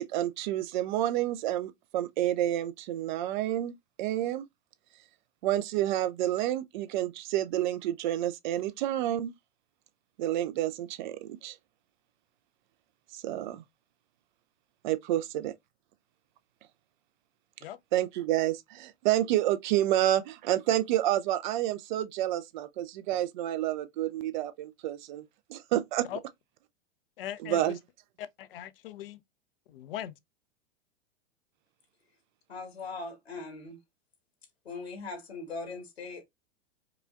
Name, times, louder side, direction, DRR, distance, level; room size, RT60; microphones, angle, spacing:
voice 1, 0.0-4.5 5.4-9.3 10.2-11.6 13.1-13.6 14.8-15.5 17.9-25.2 25.5-26.1 27.4-27.8, right 13 dB, 50° right, 0.5 m, -29 dB
voice 2, 27.2-27.8 28.2-29.2 29.7-30.1, left 11 dB, 60° left, 0.6 m, -40 dB
voice 3, 32.5-33.8 34.6-36.2, left 3 dB, 80° left, 1.5 m, -40 dB
4.8 x 2.3 x 2.4 m
figure-of-eight pair, 95°, 31 cm